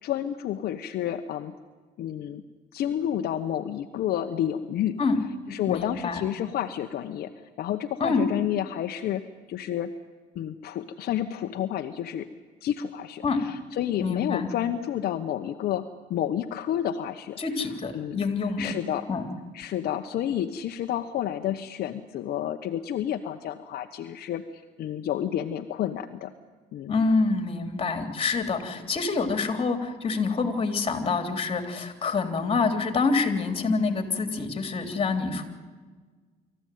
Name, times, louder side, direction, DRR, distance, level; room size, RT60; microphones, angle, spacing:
voice 1, 0.0-1.5 2.0-2.4 2.7-5.0 5.5-7.3 7.6-9.2 9.5-9.9 10.3-12.3 12.6-17.7 17.9-18.3 18.6-19.1 19.5-26.3 26.7-26.9, left 11 dB, 65° left, 6 dB, 1.2 m, -30 dB
voice 2, 5.7-6.2 8.0-8.3 13.2-13.4 14.0-14.5 17.4-18.7 19.1-19.2 26.9-35.4, left 4 dB, 35° left, 8 dB, 3.4 m, -26 dB
26.0 x 14.5 x 9.4 m, 1.4 s
cardioid pair, 110°, 17 cm